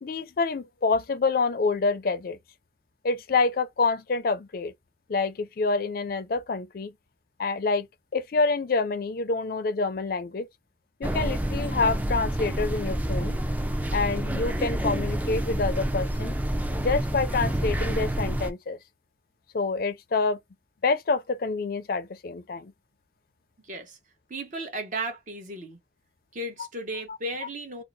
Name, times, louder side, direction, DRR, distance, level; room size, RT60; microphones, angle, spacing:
voice 1, 0.0-2.4 3.0-4.7 5.1-6.9 7.4-7.9 8.1-10.5 11.0-13.3 13.9-16.3 16.8-18.8 19.5-20.4 20.8-22.7, left 4 dB, 55° left, 0.4 m, -27 dB
sound 1, 11.0-18.5, right 1 dB, 10° right, 0.4 m, -28 dB
voice 2, 23.6-24.0 24.3-25.8 26.3-27.8, right 1 dB, 45° right, 0.9 m, -35 dB
2.7 x 2.0 x 3.9 m
head